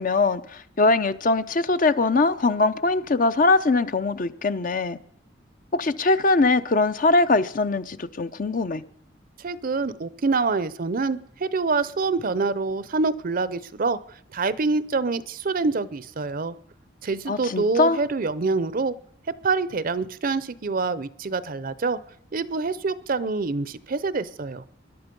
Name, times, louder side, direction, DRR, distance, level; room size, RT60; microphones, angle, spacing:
voice 1, 0.0-5.0 5.7-8.8 17.3-18.0, left 3 dB, 45° left, 0.7 m, -22 dB
voice 2, 9.4-14.0 14.3-16.5 17.0-18.9 19.4-22.0 22.3-24.6, right 3 dB, 50° right, 0.6 m, -26 dB
21.0 x 11.0 x 5.3 m
head